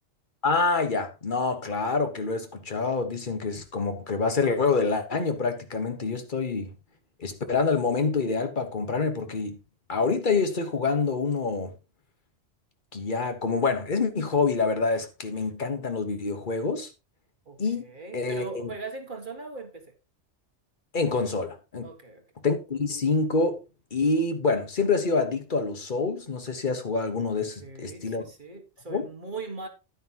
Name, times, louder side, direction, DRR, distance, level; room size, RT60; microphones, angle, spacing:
voice 1, 0.4-6.7 7.2-9.6 9.9-11.7 12.9-16.9 17.6-17.8 18.1-18.7 20.9-21.9 22.4-23.6 23.9-28.2 28.9-29.0, left 4 dB, 40° left, 1.5 m, -26 dB
voice 2, 17.5-19.9 21.8-22.2 27.6-29.7, right 3 dB, 40° right, 1.9 m, -39 dB
10.5 x 9.7 x 2.9 m
omnidirectional pair, 1.2 m